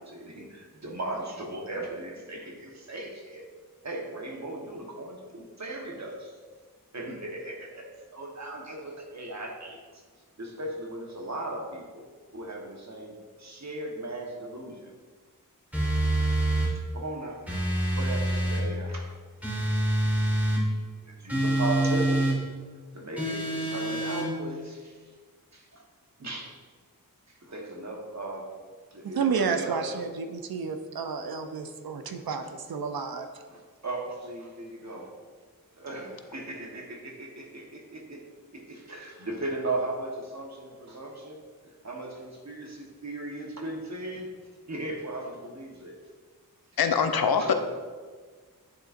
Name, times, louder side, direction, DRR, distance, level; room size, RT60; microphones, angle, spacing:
voice 1, 0.0-3.4 3.8-6.3 6.9-10.0 10.4-12.1 12.3-13.1 13.4-14.9 16.9-17.4 17.9-19.1 21.0-22.3 22.9-25.0 25.5-25.8 26.2-26.6 27.3-28.5 28.9-29.8 32.0-32.1 33.5-35.1 35.8-38.2 38.5-41.4 41.6-44.3 44.7-46.0 47.3-47.5, right 2 dB, 50° right, 0 dB, 1.2 m, -37 dB
sound 1, 15.7-16.7 17.5-18.7 19.4-20.6 21.3-22.4 23.2-24.3, right 1 dB, 5° right, 1.6 m, -26 dB
voice 2, 29.0-33.3, right 5 dB, 80° right, 7 dB, 0.5 m, -31 dB
voice 3, 46.8-47.5, left 6 dB, 85° left, 7 dB, 0.5 m, -23 dB
9.5 x 3.9 x 2.5 m, 1.5 s
wide cardioid pair, 45°, 35 cm